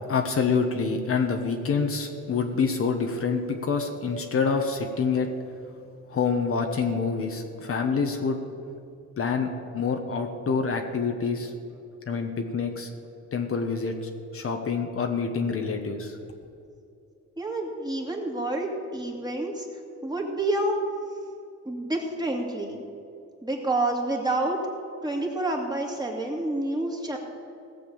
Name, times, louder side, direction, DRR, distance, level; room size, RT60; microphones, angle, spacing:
voice 1, 0.1-5.3 6.1-8.4 9.2-11.5 12.1-12.9 13.3-13.9 14.3-16.2, left 5 dB, 45° left, 4 dB, 1.3 m, -26 dB
voice 2, 17.4-19.7 20.0-20.8 21.6-22.8 23.4-24.6 25.0-27.2, right 2 dB, 15° right, 0 dB, 2.4 m, -28 dB
17.0 x 7.1 x 7.1 m, 2.6 s
cardioid pair, 90°, 30 cm